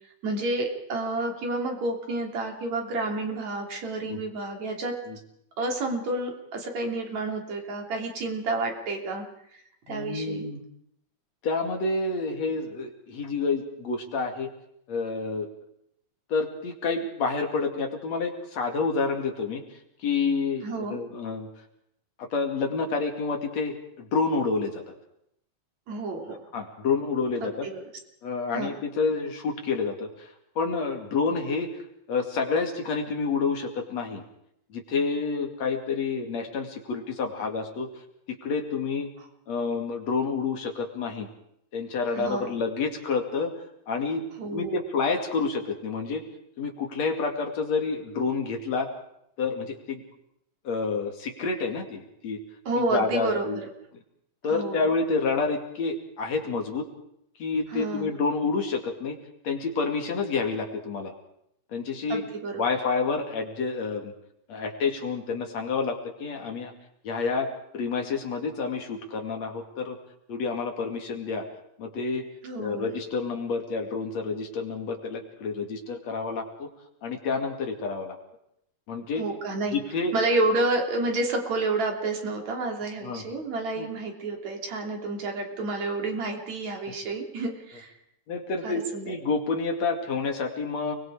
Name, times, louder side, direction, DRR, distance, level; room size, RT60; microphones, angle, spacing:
voice 1, 0.2-4.9 5.6-9.3 9.9-10.5 20.6-21.0 25.9-26.4 27.4-27.8 28.5-28.7 42.1-42.5 44.4-44.8 52.7-53.4 54.5-54.8 57.7-58.1 62.1-62.6 72.4-72.9 79.2-79.8 80.1-87.9 88.6-89.1, right 2 dB, 70° right, 2 dB, 4.4 m, -30 dB
voice 2, 9.9-10.6 11.4-14.5 14.9-15.5 16.3-19.6 20.0-21.5 22.2-24.9 26.5-27.7 28.2-31.8 32.1-34.2 34.7-37.9 38.3-39.1 39.5-41.3 41.7-43.5 43.9-44.2 44.5-46.2 46.6-48.9 49.4-50.0 50.7-52.4 52.8-53.6 54.4-56.9 57.4-59.2 59.4-61.1 61.7-62.3 62.6-64.1 64.5-66.7 67.0-70.0 70.3-71.5 71.8-72.3 72.6-76.7 77.0-78.2 78.9-79.2 79.7-80.1 83.0-83.2 83.8-83.9 88.3-91.0, left 4 dB, 65° left, 3 dB, 3.6 m, -29 dB
30.0 x 21.0 x 4.9 m, 0.75 s
omnidirectional pair, 3.4 m